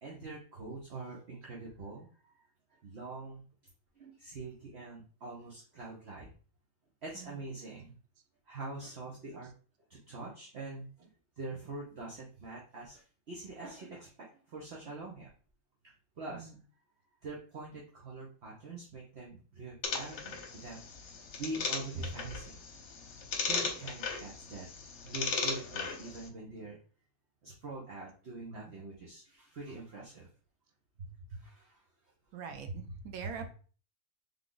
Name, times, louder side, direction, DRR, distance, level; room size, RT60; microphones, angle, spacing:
voice 1, 0.0-2.4 2.8-3.4 4.0-6.3 7.0-7.9 8.5-9.5 9.9-11.1 11.4-15.3 16.2-16.5 17.2-21.1 21.4-22.6 23.5-24.7 25.0-26.8 27.4-30.3 31.0-31.8 33.2-33.3, right 2 dB, 50° right, -3 dB, 1.1 m, -44 dB
voice 2, 16.3-16.6 32.3-33.5, right 7 dB, 80° right, 5 dB, 1.2 m, -44 dB
sound 1, 19.8-26.3, left 4 dB, 60° left, 1.0 m, -37 dB
3.6 x 3.5 x 3.8 m, 0.40 s
omnidirectional pair, 1.5 m